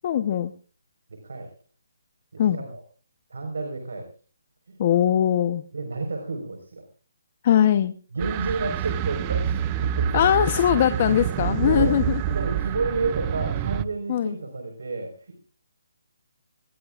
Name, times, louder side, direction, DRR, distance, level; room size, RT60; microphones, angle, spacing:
voice 1, 0.0-0.5 2.4-2.6 4.8-5.6 7.4-7.9 10.1-12.2 14.1-14.3, left 10 dB, 40° left, 9 dB, 1.0 m, -21 dB
voice 2, 2.3-2.8 3.3-4.1 4.7-4.8 5.7-6.8 8.1-10.5 11.6-15.4, right 3 dB, 80° right, 4 dB, 4.6 m, -31 dB
sound 1, 8.2-13.8, right 10 dB, 25° right, 0.7 m, -27 dB
22.0 x 20.0 x 2.5 m, 0.38 s
hypercardioid pair, 160°, 0 cm